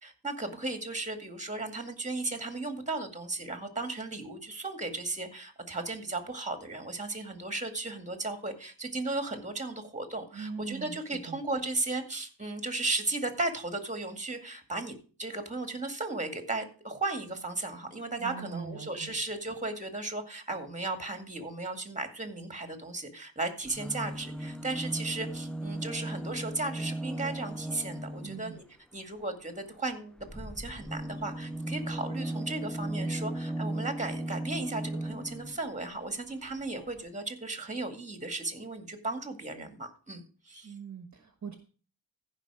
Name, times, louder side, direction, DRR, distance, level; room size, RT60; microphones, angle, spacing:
voice 1, 0.0-28.6 28.9-40.7, right 2 dB, 15° right, 6 dB, 2.2 m, -35 dB
voice 2, 10.3-11.0 11.3-11.4 18.2-19.2 28.2-28.6 40.6-41.6, right 5 dB, 40° right, 6 dB, 1.4 m, -41 dB
sound 1, 23.6-28.5 30.2-35.6 36.6-36.7 36.9-37.0, right 1 dB, ahead, 0.4 m, -36 dB
15.0 x 5.5 x 4.9 m, 0.37 s
cardioid pair, 85°, 45 cm